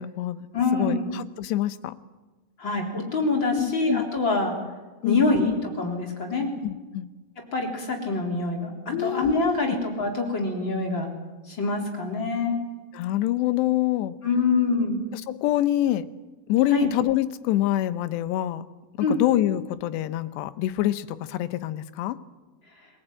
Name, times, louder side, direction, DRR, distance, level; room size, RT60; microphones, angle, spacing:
voice 1, 0.0-0.5 0.7-2.0 3.5-4.0 5.0-5.5 6.6-7.1 8.9-9.8 12.9-14.1 15.1-16.1 16.5-18.6 19.1-22.2, left 14 dB, 85° left, 13 dB, 3.1 m, -26 dB
voice 2, 0.5-1.1 2.6-4.5 5.0-6.5 7.5-11.1 11.5-12.6 14.2-15.0 16.7-16.9 19.0-19.2, left 3 dB, 30° left, 1 dB, 3.9 m, -25 dB
24.0 x 18.5 x 8.9 m, 1.2 s
omnidirectional pair, 4.8 m